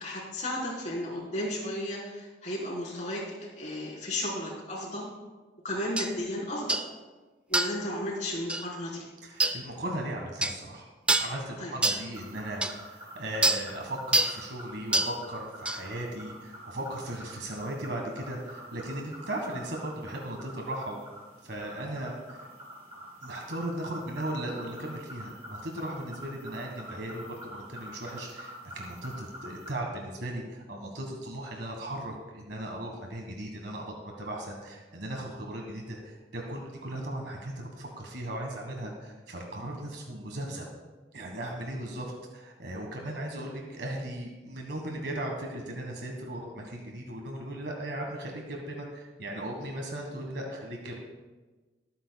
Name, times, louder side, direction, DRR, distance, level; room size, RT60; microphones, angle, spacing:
voice 1, 0.0-5.1 5.6-6.8 7.5-9.0 11.6-11.7, left 1 dB, 40° left, -4 dB, 3.7 m, -34 dB
sound 1, 6.0-6.1 6.7-6.9 7.5-7.8 8.5-8.7 9.4-9.6 10.4-10.6 11.1-11.3 11.8-12.0 12.6-12.7 13.4-13.6 14.1-14.4 14.9-15.1 15.7-15.8, right 2 dB, 5° right, 0.4 m, -26 dB
voice 2, 9.2-10.9 11.2-21.0 21.4-22.5 23.2-40.7 41.1-51.0, right 1 dB, 70° right, 1 dB, 1.5 m, -37 dB
sound 2, 12.1-29.7, equal, 35° right, 3.0 m, -46 dB
23.0 x 9.0 x 2.3 m, 1.2 s
head